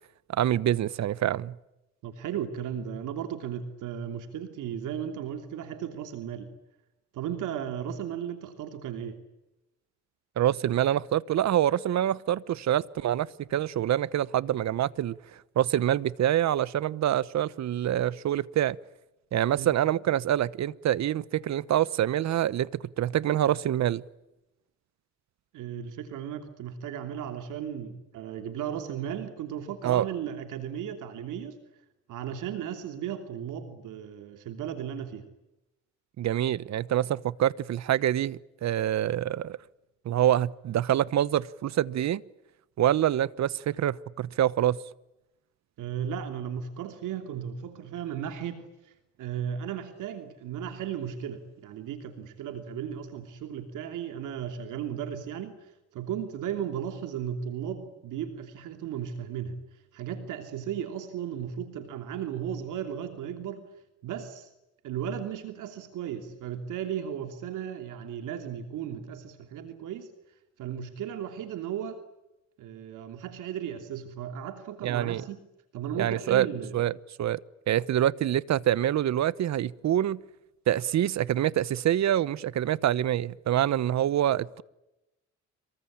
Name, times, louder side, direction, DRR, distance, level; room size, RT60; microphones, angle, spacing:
voice 1, 0.3-1.6 10.4-15.2 15.6-18.8 19.3-24.0 29.8-30.1 36.2-39.6 40.0-42.2 42.8-44.8 74.8-75.2 76.0-76.5 76.7-76.9 77.2-77.4 77.7-80.2 80.7-84.6, right 11 dB, 65° right, 1.0 m, -26 dB
voice 2, 2.0-6.5 7.1-9.2 19.5-19.7 25.5-31.6 32.1-35.2 45.8-48.9 49.2-63.7 64.0-64.5 64.8-70.1 70.6-72.0 72.6-75.4 75.7-76.8, right 9 dB, 85° right, 3.1 m, -35 dB
27.0 x 23.5 x 8.8 m
cardioid pair, 90°, 30 cm